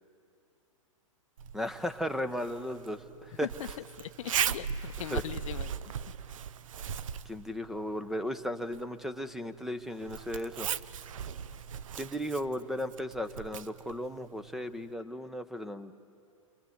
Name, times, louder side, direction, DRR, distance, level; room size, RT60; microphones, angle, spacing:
Zipper (clothing), 1.4-14.9, right 8 dB, 75° right, 0.7 m, -39 dB
voice 1, 1.5-3.5 5.1-5.2 7.3-10.7 11.9-15.9, equal, ahead, 11 dB, 0.8 m, -35 dB
voice 2, 3.4-5.9, left 12 dB, 70° left, 14 dB, 0.6 m, -40 dB
29.0 x 22.5 x 7.9 m, 2.5 s
hypercardioid pair, 115°, 17 cm